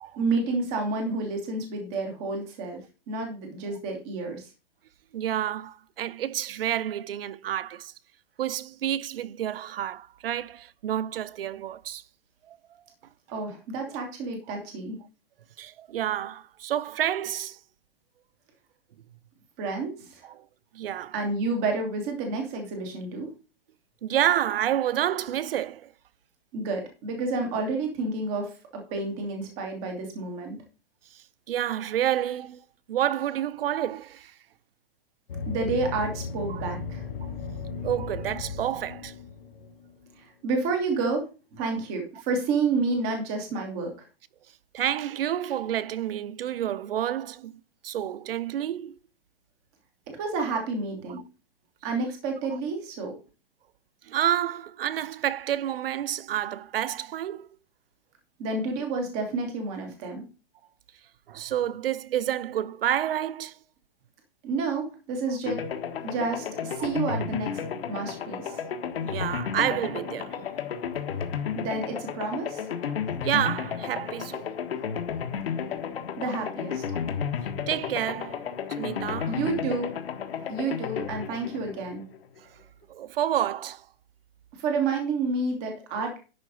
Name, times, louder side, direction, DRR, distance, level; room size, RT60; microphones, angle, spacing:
voice 1, 0.2-2.8 3.1-4.4 13.3-15.0 19.6-20.3 21.1-23.3 26.5-30.6 35.5-37.1 40.2-41.3 41.5-44.1 50.1-51.2 51.8-53.1 58.4-60.2 64.4-65.6 66.0-67.5 67.9-68.6 71.5-72.7 76.2-76.8 79.2-79.9 80.5-82.0 84.6-86.2, right 3 dB, 5° right, 0.3 m, -30 dB
voice 2, 5.1-7.9 8.4-12.0 12.5-12.6 15.6-17.6 20.3-20.4 20.7-21.1 24.0-25.9 31.1-32.6 32.9-34.3 36.5-36.7 37.2-37.3 37.8-39.1 44.7-49.0 54.1-57.5 61.3-63.6 66.8-66.9 68.5-68.6 69.0-70.4 73.2-74.5 77.7-78.4 78.8-79.4 82.9-83.8, right 11 dB, 75° right, 0.7 m, -29 dB
sound 1, 35.3-40.1, left 4 dB, 70° left, 2.4 m, -36 dB
sound 2, 65.5-82.4, left 7 dB, 90° left, 1.6 m, -33 dB
10.5 x 3.8 x 6.1 m
hypercardioid pair, 175°, 29 cm